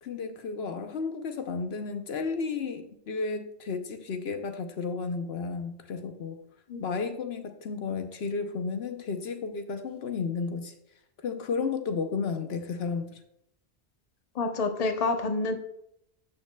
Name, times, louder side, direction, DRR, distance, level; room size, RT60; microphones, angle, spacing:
voice 1, 0.0-6.4 6.8-10.7 11.2-13.2, left 5 dB, 75° left, 7 dB, 1.0 m, -33 dB
voice 2, 14.3-15.6, left 3 dB, 40° left, 6 dB, 0.8 m, -28 dB
13.0 x 5.7 x 2.2 m, 0.76 s
omnidirectional pair, 1.1 m